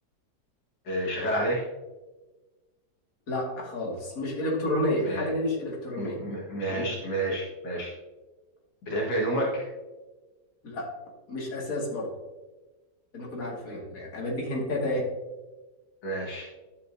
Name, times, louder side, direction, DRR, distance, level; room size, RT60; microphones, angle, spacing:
voice 1, 0.8-1.7 5.0-5.3 6.0-7.9 8.8-9.7 16.0-16.5, right 1 dB, 85° left, -3 dB, 2.3 m, -29 dB
voice 2, 3.3-6.2 10.6-10.9 11.3-12.1 13.1-15.1, left 1 dB, 55° left, -3 dB, 2.5 m, -30 dB
11.5 x 7.6 x 2.7 m, 1.2 s
omnidirectional pair, 1.8 m